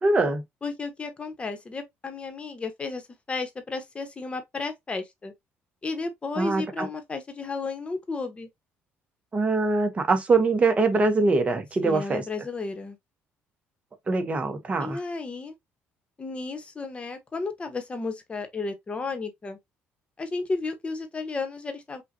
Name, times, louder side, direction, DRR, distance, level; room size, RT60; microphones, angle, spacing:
voice 1, 0.0-0.4 6.4-6.9 9.3-12.2 14.1-15.0, right 3 dB, 30° right, 1.2 m, -23 dB
voice 2, 0.6-5.3 5.8-8.5 11.8-13.0 14.8-15.5 16.2-19.6 20.2-22.0, left 3 dB, 25° left, 1.2 m, -33 dB
5.7 x 2.5 x 2.8 m
cardioid pair, 110°, 5 cm